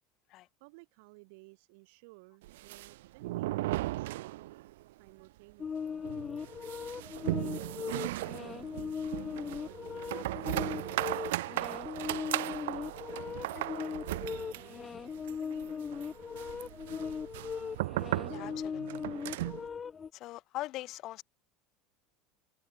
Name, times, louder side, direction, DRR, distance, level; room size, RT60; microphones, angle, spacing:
voice 1, 0.6-4.4 5.0-6.0 7.6-11.4 12.0-15.8, right 28 dB, 75° right, 3.5 m, -57 dB
sound 1, 2.4-4.8 5.1-5.2 5.5-5.6 6.0-19.7, right 17 dB, 90° right, 1.2 m, -37 dB
sound 2, 5.6-20.1, left 6 dB, 25° left, 0.7 m, -39 dB
voice 2, 18.3-18.8 20.1-21.2, left 17 dB, 50° left, 1.8 m, -41 dB
open air
supercardioid pair, 125°, 0 cm